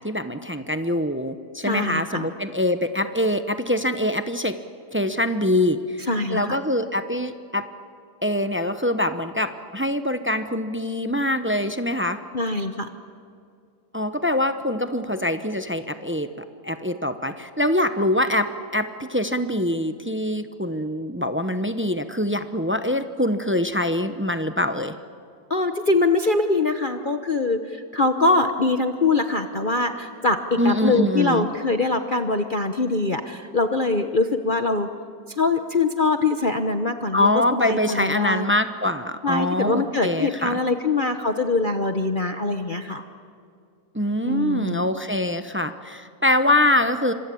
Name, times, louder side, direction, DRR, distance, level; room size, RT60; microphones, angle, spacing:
voice 1, 0.0-4.6 4.9-7.7 8.2-12.2 13.9-16.3 16.6-24.9 30.6-31.5 37.1-40.6 43.9-47.1, left 1 dB, 15° right, 9 dB, 0.5 m, -24 dB
voice 2, 1.6-2.3 6.1-6.6 12.3-12.9 25.5-30.4 30.6-34.9 35.4-38.5 39.2-43.0 44.2-44.9, left 3 dB, 35° left, 6 dB, 1.0 m, -23 dB
25.5 x 25.5 x 8.6 m, 2.4 s
omnidirectional pair, 1.9 m